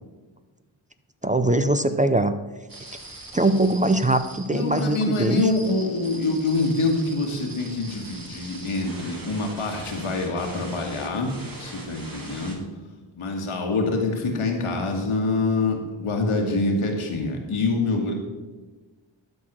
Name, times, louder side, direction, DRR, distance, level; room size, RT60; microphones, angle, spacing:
voice 1, 1.2-2.3 3.3-5.5, right 2 dB, 15° right, 10 dB, 0.5 m, -21 dB
sound 1, 2.7-12.6, right 2 dB, 45° right, 2.2 m, -42 dB
voice 2, 4.5-11.3 11.6-12.6 13.2-18.1, left 3 dB, 85° left, 1 dB, 1.8 m, -25 dB
12.0 x 4.8 x 6.1 m, 1.3 s
cardioid pair, 55°, 49 cm